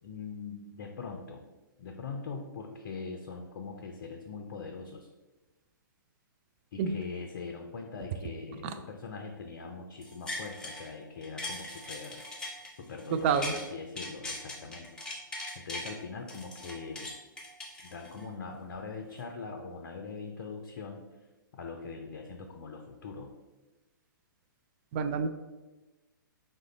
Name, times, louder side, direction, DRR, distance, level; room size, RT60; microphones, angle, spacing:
voice 1, 0.0-1.4 1.8-5.1 6.7-12.2 12.8-14.9 15.5-17.1 17.8-21.1 21.5-23.3, left 4 dB, 55° left, 3 dB, 0.5 m, -42 dB
sound 1, 10.0-10.9 11.2-13.6 13.9-15.9 16.3-18.3 18.7-18.8, left 2 dB, 5° left, 0.8 m, -40 dB
voice 2, 13.1-13.5 24.9-25.3, right 6 dB, 35° right, 8 dB, 0.3 m, -27 dB
4.8 x 2.2 x 4.1 m, 1.1 s
figure-of-eight pair, 115°, 11 cm